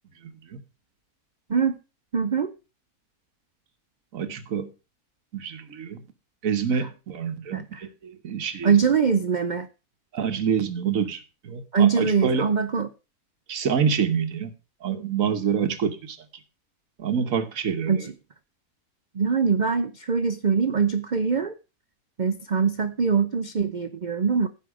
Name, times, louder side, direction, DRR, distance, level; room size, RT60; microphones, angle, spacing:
voice 1, 0.2-0.6 4.1-4.7 5.3-6.0 6.4-8.8 10.1-12.5 13.5-14.5 14.8-16.2 17.0-18.0, right 7 dB, 60° right, 1.5 m, -27 dB
voice 2, 2.1-2.5 7.5-7.8 8.6-9.7 11.7-12.9 17.9-18.1 19.1-21.5 22.2-24.5, right 6 dB, 90° right, 0.4 m, -23 dB
15.5 x 5.6 x 4.8 m
omnidirectional pair, 1.7 m